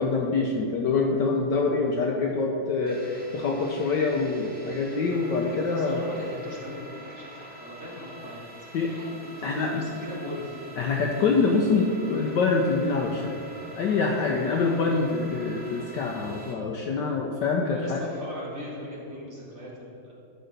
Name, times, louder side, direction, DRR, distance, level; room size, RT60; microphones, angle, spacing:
voice 1, 0.0-6.0 8.7-8.9 9.4-9.9 10.8-13.3 13.8-18.0, left 4 dB, 70° left, 1 dB, 1.1 m, -25 dB
sound 1, 2.9-16.5, right 1 dB, 5° left, 0.8 m, -46 dB
voice 2, 5.7-8.4 8.8-9.1 9.4-10.7 17.7-20.1, equal, 35° right, -6 dB, 2.3 m, -39 dB
11.0 x 3.9 x 6.5 m, 2.6 s
omnidirectional pair, 2.4 m